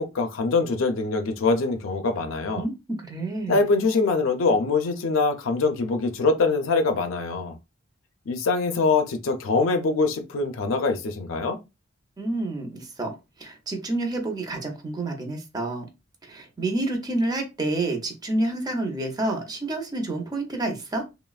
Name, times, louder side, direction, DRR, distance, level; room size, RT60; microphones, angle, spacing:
voice 1, 0.0-2.6 3.5-7.6 8.3-11.6, left 3 dB, 85° left, 0.5 m, -23 dB
voice 2, 2.5-3.6 12.2-15.9 16.2-21.1, right 2 dB, 20° right, 0.5 m, -29 dB
3.2 x 2.0 x 2.3 m
head